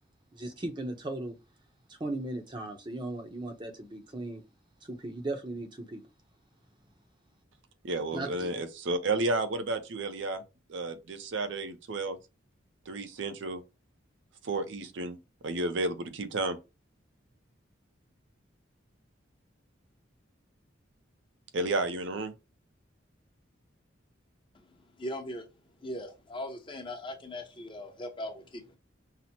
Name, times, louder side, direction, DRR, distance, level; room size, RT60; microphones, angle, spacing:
voice 1, 0.3-1.4 1.9-4.4 4.8-6.0 8.1-8.5, right 2 dB, 25° right, 0.6 m, -37 dB
voice 2, 7.8-10.4 10.7-12.2 12.9-13.6 14.4-15.2 15.4-16.6 21.5-22.3, right 2 dB, 65° right, 0.5 m, -32 dB
voice 3, 25.0-25.5 25.8-28.8, left 1 dB, 25° left, 0.7 m, -39 dB
5.6 x 2.0 x 2.8 m
head